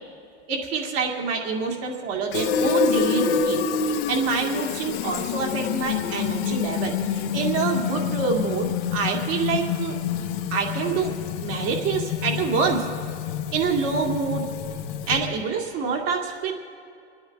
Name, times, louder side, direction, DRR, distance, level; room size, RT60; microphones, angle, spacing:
voice 1, 0.5-3.6 4.1-10.0 10.5-12.9 13.5-14.5 15.1-16.5, right 5 dB, 50° right, 1 dB, 2.2 m, -26 dB
Fill (with liquid), 2.3-15.4, left 7 dB, 60° left, 1.0 m, -27 dB
30.0 x 10.0 x 3.5 m, 2.4 s
hypercardioid pair, 110°, 34 cm